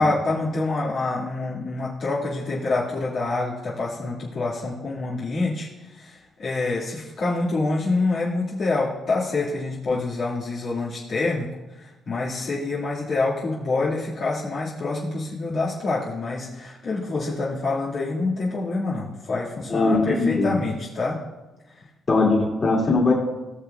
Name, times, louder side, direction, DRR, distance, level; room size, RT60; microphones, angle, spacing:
voice 1, 0.0-11.5 11.8-21.2, left 3 dB, 60° left, -7 dB, 1.9 m, -26 dB
voice 2, 19.7-20.5 22.1-23.1, left 3 dB, 35° left, -2 dB, 2.6 m, -20 dB
18.5 x 6.1 x 2.3 m, 1.1 s
cardioid pair, 90°, 0 cm